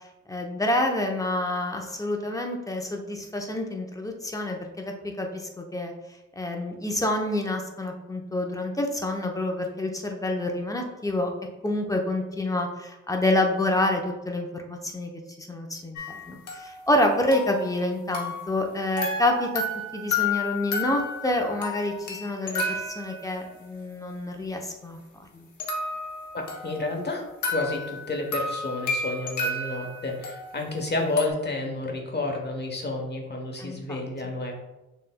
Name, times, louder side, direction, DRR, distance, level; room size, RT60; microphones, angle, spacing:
voice 1, 0.3-5.9 6.4-11.3 11.6-15.1 15.4-16.0 16.3-19.6 19.9-25.0 25.3-25.4 33.6-34.0, left 1 dB, 10° left, 2 dB, 0.7 m, -27 dB
sound 1, 16.0-18.7 19.0-23.6 25.6-31.3, left 3 dB, 90° left, 0.9 m, -32 dB
voice 2, 26.3-34.6, left 2 dB, 35° left, 2 dB, 1.0 m, -30 dB
6.6 x 3.2 x 2.2 m, 1.0 s
cardioid pair, 80°, 29 cm